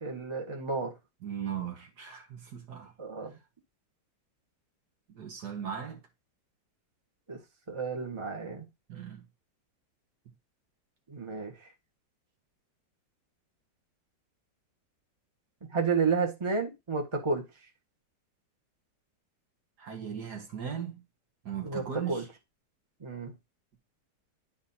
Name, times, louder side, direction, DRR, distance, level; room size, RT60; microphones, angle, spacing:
voice 1, 0.0-0.9 3.0-3.4 7.3-7.4 7.7-8.7 11.1-11.7 15.7-17.5 21.6-22.2 23.0-23.3, right 4 dB, 15° right, 1.4 m, -31 dB
voice 2, 1.2-2.9 5.1-6.0 8.9-9.2 19.8-21.0 21.5-22.3, right 8 dB, 65° right, 2.0 m, -38 dB
11.5 x 4.2 x 2.8 m
omnidirectional pair, 1.9 m